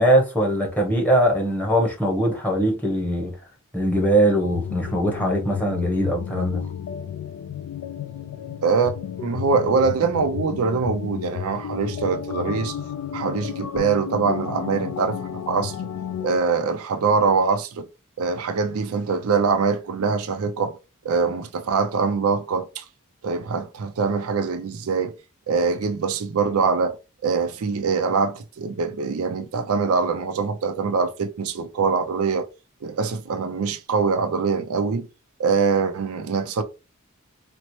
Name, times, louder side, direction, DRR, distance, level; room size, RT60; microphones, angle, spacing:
voice 1, 0.0-3.3 3.7-6.6, right 1 dB, 5° left, 0.9 m, -21 dB
sound 1, 4.4-16.4, left 8 dB, 75° left, 0.3 m, -32 dB
voice 2, 8.6-12.7 13.1-15.8 16.2-17.9 18.2-20.8 21.0-22.8 23.2-25.1 25.5-26.9 27.2-32.5 32.8-35.1 35.4-36.6, right 5 dB, 70° right, 0.4 m, -23 dB
4.1 x 2.0 x 3.0 m
head